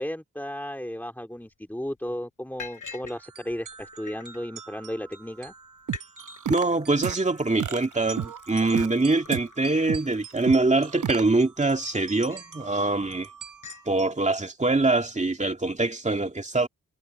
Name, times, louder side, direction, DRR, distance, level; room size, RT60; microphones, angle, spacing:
voice 1, 0.0-5.5, equal, 5° left, 2.5 m, -34 dB
Liquid, 1.4-1.5 1.9-2.1 2.6-3.2 3.5-4.4 5.1-5.2 5.4-5.5 5.8-6.1 6.4-6.8 7.2-11.1 11.6-12.6 13.0-13.2 13.4-13.9, left 5 dB, 70° left, 7.0 m, -45 dB
sound 1, 3.0-14.1, right 6 dB, 85° right, 5.1 m, -47 dB
sound 2, 5.9-6.6 7.0-7.1 7.6-8.9 9.3-9.4 9.9-10.0 10.5-11.2, right 8 dB, 70° right, 0.9 m, -30 dB
voice 2, 6.5-13.3 13.9-16.7, right 2 dB, 20° right, 2.3 m, -24 dB
wide cardioid pair, 105°, 32 cm